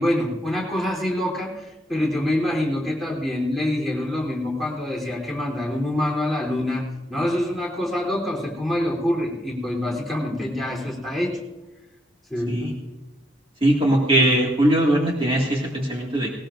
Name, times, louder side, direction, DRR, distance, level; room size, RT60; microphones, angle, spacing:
voice 1, 0.0-6.8 7.1-11.4 12.3-12.7, left 1 dB, ahead, -4 dB, 3.4 m, -25 dB
voice 2, 13.6-16.3, right 1 dB, 30° right, -3 dB, 2.0 m, -20 dB
19.5 x 19.0 x 2.6 m, 1.1 s
head